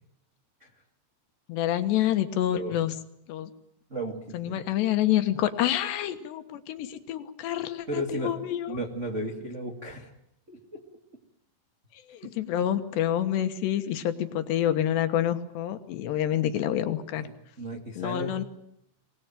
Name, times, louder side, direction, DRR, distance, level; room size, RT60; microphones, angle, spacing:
voice 1, 1.5-2.9 3.3-3.5 4.3-8.8 12.1-17.3 18.0-18.4, left 11 dB, 70° left, 9 dB, 3.1 m, -27 dB
voice 2, 3.9-4.6 7.9-8.3 8.7-10.1 10.5-10.8 17.2-17.3 17.6-18.4, right 1 dB, 75° right, 1 dB, 0.6 m, -34 dB
24.5 x 19.5 x 9.1 m, 0.76 s
omnidirectional pair, 5.8 m